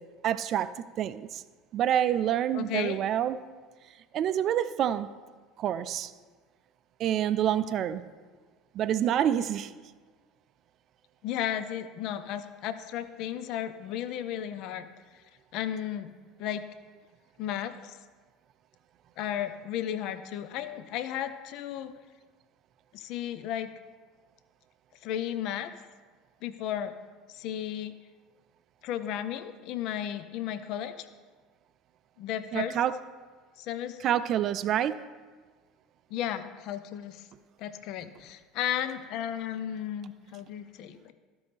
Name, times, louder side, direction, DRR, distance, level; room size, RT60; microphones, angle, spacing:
voice 1, 0.2-1.4 1.7-3.4 4.1-5.1 5.6-6.1 7.0-8.0 8.7-9.7 32.5-32.9 34.0-35.0, right 10 dB, 45° right, 13 dB, 0.4 m, -27 dB
voice 2, 2.5-3.0 11.2-14.9 15.5-16.6 17.4-18.0 19.2-21.9 22.9-23.7 25.0-25.7 26.4-26.9 27.3-27.9 28.8-31.1 32.2-32.8 33.6-34.0 36.1-37.3 37.6-41.1, left 10 dB, 55° left, 11 dB, 0.5 m, -34 dB
13.5 x 5.2 x 3.4 m, 1.4 s
figure-of-eight pair, 70°, 0 cm